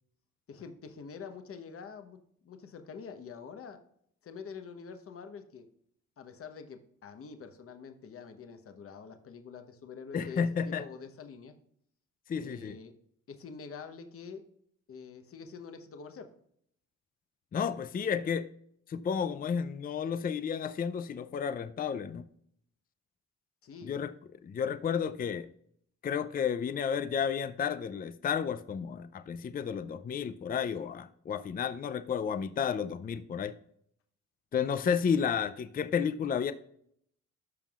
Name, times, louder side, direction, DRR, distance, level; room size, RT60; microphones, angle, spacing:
voice 1, 0.5-2.2 2.4-3.8 4.2-5.7 6.2-11.5 12.4-12.9 13.3-14.4 14.9-16.3 23.6-24.0, left 5 dB, 50° left, 7 dB, 1.0 m, -46 dB
voice 2, 10.1-10.8 12.3-12.8 17.5-18.5 18.9-22.2 23.9-24.1 24.4-25.5 26.0-33.5 34.5-36.5, left 7 dB, 30° left, 11 dB, 0.5 m, -32 dB
13.0 x 5.4 x 2.4 m, 0.67 s
cardioid pair, 90°, 30 cm